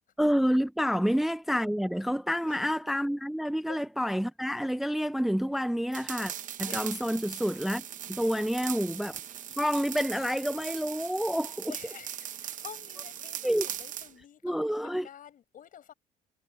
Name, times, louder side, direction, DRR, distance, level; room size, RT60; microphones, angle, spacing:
voice 1, 0.2-6.3 6.6-7.8 8.1-9.2 9.6-11.7 13.4-13.6 14.4-15.1, equal, ahead, 0.6 m, -28 dB
voice 2, 2.5-2.8 3.7-3.9 6.7-7.0 8.2-8.3 11.4-15.9, left 10 dB, 55° left, 5.7 m, -50 dB
sound 1, 5.9-14.1, right 10 dB, 50° right, 0.9 m, -39 dB
cardioid pair, 110°, 17 cm